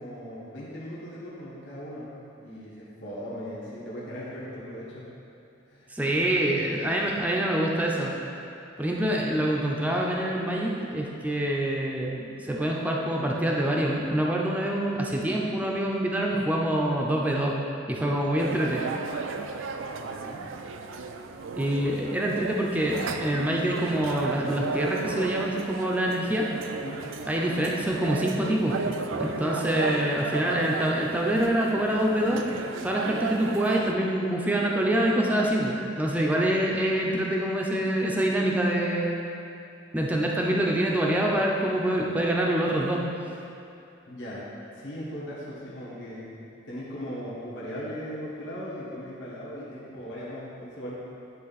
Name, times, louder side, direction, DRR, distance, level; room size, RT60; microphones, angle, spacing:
voice 1, 0.0-2.1 2.4-5.1 5.7-6.2 20.0-20.5 26.8-27.1 44.1-44.5 44.7-51.0, equal, 65° left, -8 dB, 1.4 m, -38 dB
voice 2, 5.9-8.1 8.8-17.5 17.9-18.9 21.6-26.5 27.3-32.5 32.8-39.2 39.9-43.1, right 1 dB, 10° right, -2 dB, 0.5 m, -26 dB
sound 1, 18.4-33.9, right 4 dB, 75° right, 0.4 m, -34 dB
10.0 x 3.4 x 4.1 m, 2.7 s
head